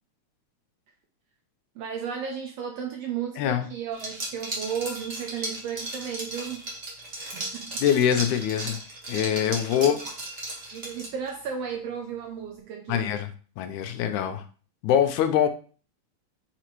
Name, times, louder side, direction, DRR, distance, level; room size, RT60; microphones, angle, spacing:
voice 1, 1.8-6.7 7.2-7.8 9.6-10.0 10.7-13.1, right 7 dB, 75° right, 1.5 m, -34 dB
voice 2, 3.4-3.7 7.8-8.8 9.1-10.0 12.9-13.3 13.6-14.4 14.8-15.5, left 9 dB, 80° left, 2.0 m, -23 dB
Liquid, 3.9-11.3, right 2 dB, 35° right, 1.2 m, -36 dB
5.0 x 5.0 x 4.5 m
omnidirectional pair, 3.6 m